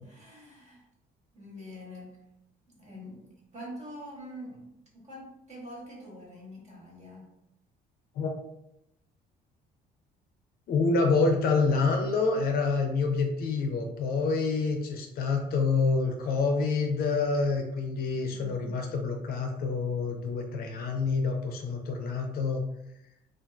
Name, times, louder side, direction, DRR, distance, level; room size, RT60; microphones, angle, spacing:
voice 1, 0.0-0.9 1.3-2.2 2.7-7.3 18.3-18.8, equal, 45° right, -3 dB, 1.1 m, -45 dB
voice 2, 10.7-22.6, left 4 dB, 60° left, 4 dB, 0.5 m, -27 dB
2.5 x 2.4 x 2.3 m, 0.82 s
cardioid pair, 110°, 17 cm